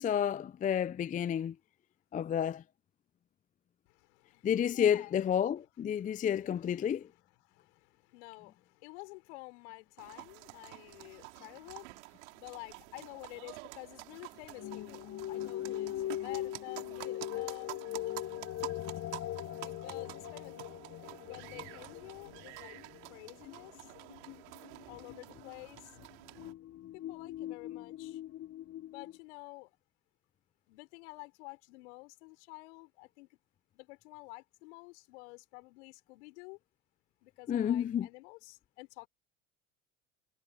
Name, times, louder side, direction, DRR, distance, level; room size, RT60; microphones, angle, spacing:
voice 1, 0.0-1.5 2.1-2.6 4.4-7.1 37.5-38.1, left 9 dB, 20° left, 0.5 m, -30 dB
voice 2, 3.9-5.2 6.0-6.3 7.4-17.7 19.5-20.8 21.2-22.8 23.1-23.9 24.9-26.0 26.9-28.2 28.9-29.7 30.7-33.4 33.7-36.6 37.2-39.1, left 26 dB, 70° left, 4.2 m, -50 dB
sound 1, 10.0-26.5, right 25 dB, 70° right, 4.1 m, -49 dB
sound 2, 14.6-29.2, left 13 dB, 40° left, 1.0 m, -41 dB
hypercardioid pair, 75°, 36 cm